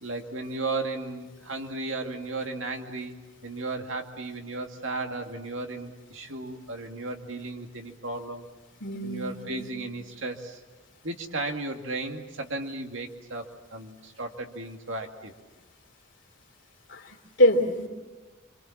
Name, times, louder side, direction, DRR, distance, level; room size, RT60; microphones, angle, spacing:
voice 1, 0.0-3.2 3.4-8.4 9.0-10.6 11.0-13.5 13.7-15.3, right 2 dB, 70° right, 3 dB, 2.3 m, -35 dB
voice 2, 8.8-9.7 16.9-17.9, left 1 dB, 65° left, 3 dB, 3.1 m, -25 dB
26.0 x 25.5 x 7.3 m, 1.2 s
head